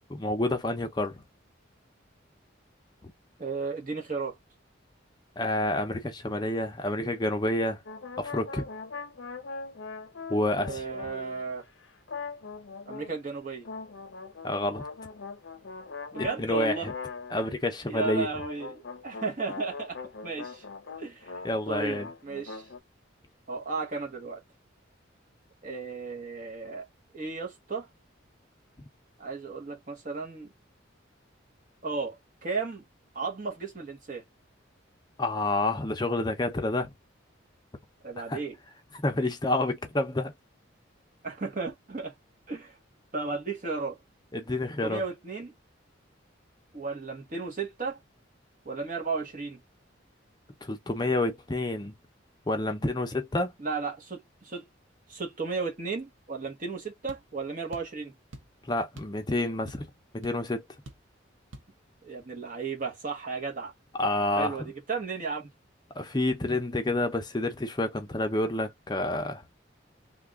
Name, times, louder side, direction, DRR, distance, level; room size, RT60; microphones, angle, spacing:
voice 1, 0.1-1.2 5.4-7.8 8.2-8.7 10.3-10.8 14.4-14.8 16.2-16.9 17.3-18.3 21.4-22.1 35.2-36.9 38.3-38.4 39.0-40.3 44.3-45.0 50.6-51.9 52.5-53.5 58.6-59.9 60.1-60.6 64.0-64.6 66.0-69.4, left 1 dB, 20° left, 0.6 m, -28 dB
voice 2, 3.4-4.4 10.7-11.6 12.9-13.7 16.1-16.9 17.3-17.4 17.9-20.0 20.2-20.6 21.0-21.4 21.7-22.7 23.5-24.4 25.6-26.9 27.1-27.9 29.2-30.5 31.8-32.8 33.1-34.2 38.0-38.5 41.2-42.1 42.5-42.8 43.1-44.0 44.8-45.5 46.7-48.0 48.6-49.6 53.6-54.6 55.1-58.1 62.0-63.7 64.3-65.5, right 4 dB, 40° right, 1.0 m, -34 dB
sound 1, 7.9-11.6 12.1-13.2 13.6-17.6 17.9-21.5 21.8-22.8, left 4 dB, 70° left, 0.7 m, -41 dB
sound 2, 57.1-57.3 57.7-58.0 58.3-58.6 59.0-59.2 59.5-60.0 60.2-60.4 60.9-61.1 61.5-61.7, right 1 dB, 75° right, 0.8 m, -47 dB
3.3 x 2.3 x 3.5 m
head